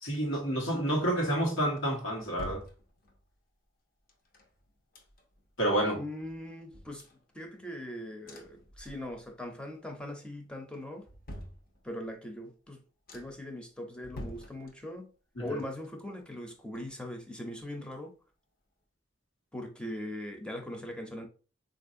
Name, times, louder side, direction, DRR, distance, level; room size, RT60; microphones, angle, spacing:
voice 1, 0.0-2.6 5.6-6.0 15.4-15.5, right 1 dB, 90° left, 1.3 m, -29 dB
sound 1, 1.6-3.4 4.1-5.5 5.9-6.0 6.2-7.8 8.2-9.4 9.7-10.2 10.7-12.2 12.6-12.7 13.1-13.5 14.0-15.2 15.5-17.3 17.6-17.7, equal, 50° left, 0.7 m, -49 dB
voice 2, 5.9-7.1 7.3-11.1 11.8-12.8 13.1-15.1 15.4-18.1 19.5-21.3, left 1 dB, 5° left, 0.6 m, -40 dB
4.1 x 2.5 x 2.6 m
head